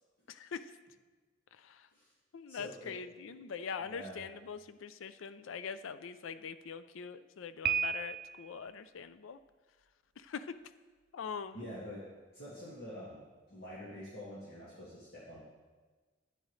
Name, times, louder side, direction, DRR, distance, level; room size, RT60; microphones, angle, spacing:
voice 1, 0.3-0.8 1.5-1.9 2.3-9.4 10.2-10.6 11.1-11.7, left 6 dB, 85° left, 13 dB, 0.4 m, -43 dB
voice 2, 2.5-3.0 3.8-4.2 11.5-12.0 12.3-15.4, equal, 55° left, -8 dB, 1.9 m, -46 dB
Piano, 7.6-8.6, right 7 dB, 50° right, 0.4 m, -33 dB
11.0 x 9.1 x 3.2 m, 1.3 s
head